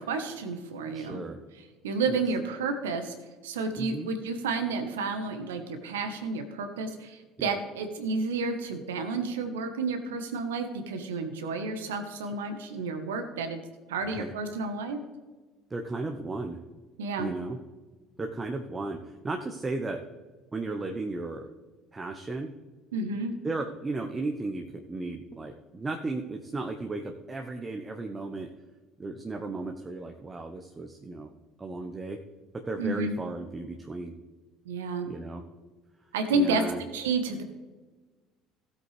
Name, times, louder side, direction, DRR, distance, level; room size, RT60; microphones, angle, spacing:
voice 1, 0.0-1.2 1.8-3.1 3.4-13.6 13.9-15.0 17.0-17.3 22.9-23.3 32.8-33.2 34.6-35.1 36.1-36.6 36.9-37.4, right 3 dB, 80° right, 7 dB, 1.3 m, -31 dB
voice 2, 0.9-1.4 2.1-2.2 3.8-4.1 7.4-7.5 14.0-14.3 15.7-16.6 17.2-17.6 18.2-20.0 20.5-21.5 21.9-22.5 23.4-28.5 29.0-31.3 31.6-32.2 32.5-34.1 35.1-35.4 36.3-36.8, right 3 dB, 25° right, 3 dB, 1.0 m, -35 dB
16.0 x 8.1 x 3.4 m, 1.3 s
hypercardioid pair, 60°, 0 cm